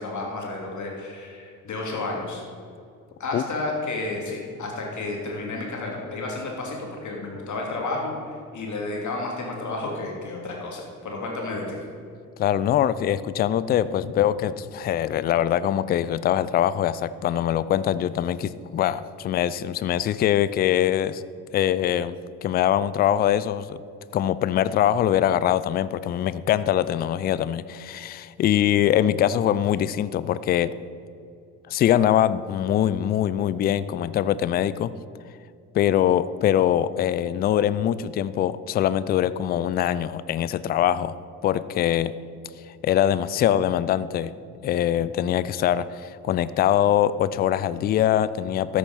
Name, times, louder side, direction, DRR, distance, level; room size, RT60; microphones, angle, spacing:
voice 1, 0.0-2.4 3.2-11.8, left 2 dB, 40° left, -1 dB, 3.1 m, -31 dB
voice 2, 12.4-21.2 21.5-23.8 24.1-30.8 31.7-35.0 35.7-41.2 41.4-42.2 42.8-44.3 44.6-48.8, left 11 dB, 25° left, 16 dB, 0.3 m, -23 dB
13.5 x 6.9 x 5.6 m, 2.5 s
figure-of-eight pair, 50°, 45 cm